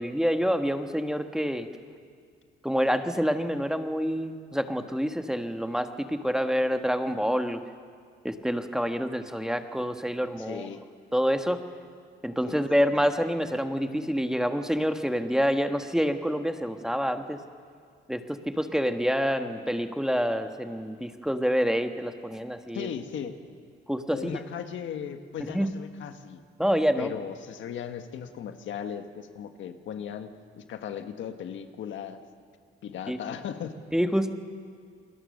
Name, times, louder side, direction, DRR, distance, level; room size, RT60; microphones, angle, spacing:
voice 1, 0.0-1.7 2.6-7.6 8.2-10.7 11.1-11.6 12.2-17.4 18.1-22.9 23.9-24.4 25.5-25.7 26.6-27.1 33.1-33.2 33.9-34.3, equal, 5° right, 6 dB, 1.4 m, -27 dB
voice 2, 10.4-10.8 12.5-12.6 22.7-23.4 24.1-26.4 27.0-32.2 32.8-33.7, left 8 dB, 75° left, 7 dB, 1.6 m, -37 dB
28.0 x 21.0 x 6.6 m, 2.1 s
cardioid pair, 90°, 20 cm